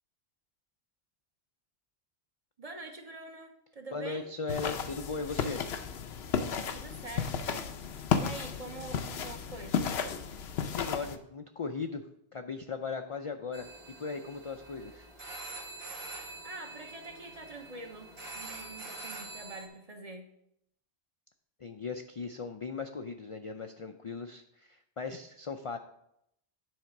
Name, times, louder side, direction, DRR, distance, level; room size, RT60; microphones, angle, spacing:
voice 1, 2.6-4.3 6.7-7.5 8.2-9.9 16.4-20.3, right 2 dB, 35° right, 4 dB, 1.0 m, -45 dB
voice 2, 3.9-5.6 10.6-12.0 12.3-13.7 14.0-15.1 21.6-25.8, left 4 dB, 50° left, 6 dB, 0.4 m, -38 dB
sound 1, 4.5-11.2, left 7 dB, 80° left, 0.9 m, -33 dB
sound 2, 13.5-19.7, right 2 dB, 70° right, 1.5 m, -45 dB
9.4 x 4.2 x 5.9 m, 0.77 s
omnidirectional pair, 1.1 m